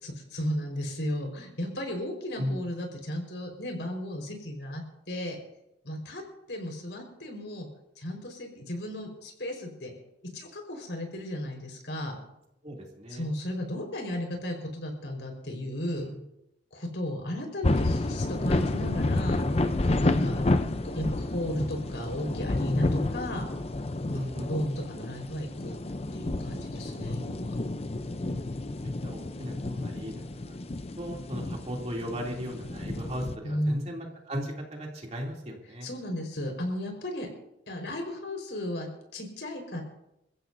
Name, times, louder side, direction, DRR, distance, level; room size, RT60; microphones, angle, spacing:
voice 1, 0.0-5.4 5.8-6.2 6.5-7.7 8.0-9.9 10.3-12.2 13.1-16.1 16.7-19.4 20.0-20.4 20.9-23.5 24.1-24.2 24.5-25.7 26.1-27.5 33.4-33.8 35.8-37.3 37.7-39.8, left 1 dB, 80° left, 2 dB, 4.7 m, -34 dB
voice 2, 12.6-13.3 16.0-16.2 24.1-24.5 29.0-30.2 31.0-35.9, equal, 35° right, -1 dB, 2.9 m, -36 dB
sound 1, 17.6-33.4, left 2 dB, 35° left, 0.6 m, -30 dB
28.5 x 15.0 x 2.7 m, 0.86 s
head